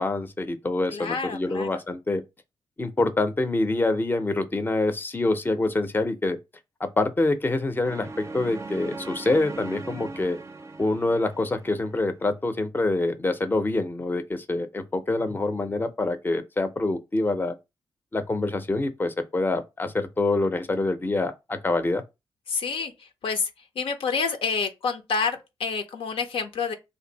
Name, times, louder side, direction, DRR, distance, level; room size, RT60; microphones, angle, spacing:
voice 1, 0.0-2.2 2.8-6.4 6.8-10.4 10.8-17.5 18.1-22.0, left 2 dB, 20° left, 0.5 m, -26 dB
voice 2, 0.9-1.7 22.5-22.9 23.2-23.4 23.8-26.7, left 5 dB, 75° left, 0.6 m, -28 dB
sound 1, 7.8-12.0, right 3 dB, 30° right, 0.4 m, -39 dB
2.6 x 2.5 x 3.9 m
cardioid pair, 75°, 9 cm